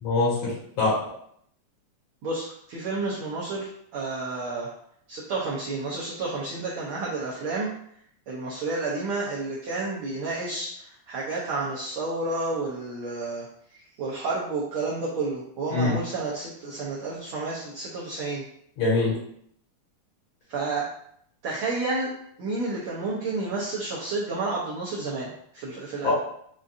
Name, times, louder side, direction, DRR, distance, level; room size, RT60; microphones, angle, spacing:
voice 1, 0.0-0.9 15.7-16.0 18.8-19.1 26.0-26.1, left 3 dB, 65° left, -6 dB, 2.6 m, -23 dB
voice 2, 2.2-4.7 5.1-7.7 8.3-13.5 13.7-18.4 20.5-20.9 21.4-22.1 22.4-26.1, right 3 dB, 80° right, -6 dB, 1.2 m, -30 dB
6.2 x 2.6 x 2.5 m, 0.68 s
omnidirectional pair, 3.3 m